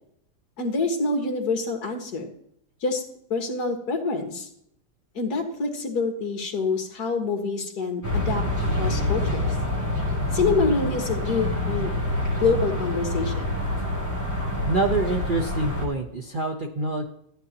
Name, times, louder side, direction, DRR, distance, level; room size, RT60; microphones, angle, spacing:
voice 1, 0.6-2.3 2.8-3.0 3.3-4.5 5.2-8.4 8.8-9.5 10.3-11.9 12.4-13.5, left 4 dB, 50° left, 4 dB, 2.0 m, -26 dB
sound 1, 8.0-15.9, left 1 dB, 10° right, 2.8 m, -26 dB
voice 2, 14.6-17.0, right 2 dB, 65° right, 2 dB, 0.5 m, -26 dB
13.5 x 9.3 x 2.9 m, 0.71 s
omnidirectional pair, 2.2 m